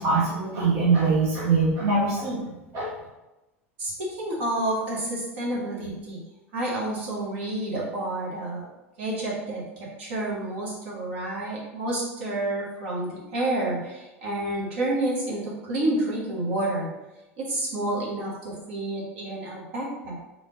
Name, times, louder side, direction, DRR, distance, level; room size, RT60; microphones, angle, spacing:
voice 1, 0.0-2.4 2.7-2.9, right 4 dB, 45° right, -6 dB, 1.3 m, -23 dB
voice 2, 3.8-6.2 6.5-8.7 9.0-9.6 10.0-16.9 17.4-20.1, right 1 dB, 60° right, -5 dB, 1.5 m, -29 dB
3.6 x 3.4 x 3.9 m, 1.0 s
figure-of-eight pair, 75°, 7 cm